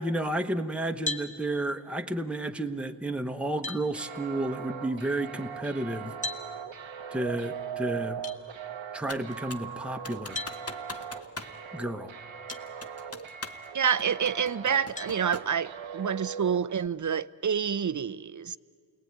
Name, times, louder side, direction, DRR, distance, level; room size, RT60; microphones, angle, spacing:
voice 1, 0.0-6.1 7.1-8.2 8.9-10.4 11.7-12.1, right 1 dB, ahead, 1.0 m, -31 dB
sound 1, 1.0-1.3 3.0-3.1 3.6-3.8 6.2-6.4 8.2-8.4 10.3-10.6 12.5-12.6 13.3-13.4 15.0-15.2, left 2 dB, 15° left, 1.6 m, -34 dB
sound 2, 3.9-16.9, right 8 dB, 75° right, 0.9 m, -40 dB
Computer keyboard, 9.1-9.7 10.1-11.6 11.8-11.9 12.5-13.7 14.0-15.6, left 3 dB, 30° left, 1.3 m, -42 dB
voice 2, 13.7-18.6, right 7 dB, 40° right, 0.6 m, -28 dB
28.5 x 19.5 x 9.4 m
wide cardioid pair, 65°, 46 cm